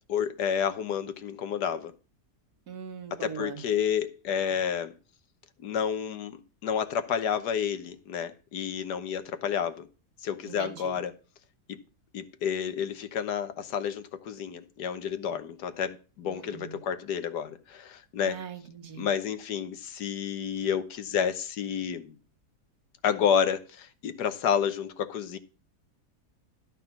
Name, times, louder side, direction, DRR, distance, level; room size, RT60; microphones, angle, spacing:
voice 1, 0.1-1.9 3.1-4.9 5.6-9.9 10.2-11.1 11.7-11.8 12.1-18.4 19.0-22.1 23.0-25.4, left 8 dB, 80° left, 1.6 m, -30 dB
voice 2, 2.7-3.6 10.4-11.0 16.3-16.8 18.3-19.1, right 7 dB, 70° right, 1.8 m, -41 dB
11.5 x 5.6 x 5.9 m
omnidirectional pair, 1.7 m